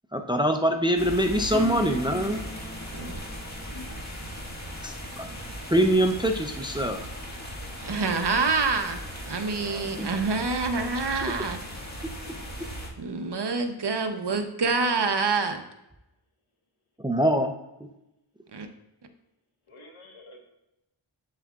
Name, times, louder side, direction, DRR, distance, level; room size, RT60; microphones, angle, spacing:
voice 1, 0.1-2.4 4.8-5.4 5.7-7.0 10.0-10.1 17.0-17.5, equal, 10° right, 5 dB, 0.4 m, -24 dB
sound 1, 1.0-12.9, equal, 35° left, 1.7 m, -38 dB
Acoustic guitar / Strum, 1.5-7.7 8.1-8.2, right 2 dB, 10° left, 1.6 m, -41 dB
voice 2, 3.6-4.0 9.5-10.1 19.7-20.5, left 3 dB, 75° left, 1 dB, 1.5 m, -46 dB
voice 3, 7.8-9.0 9.3-11.6 13.0-15.6 18.5-18.7, right 4 dB, 55° right, 6 dB, 0.8 m, -27 dB
7.5 x 7.3 x 2.4 m, 0.89 s
wide cardioid pair, 60°, 50 cm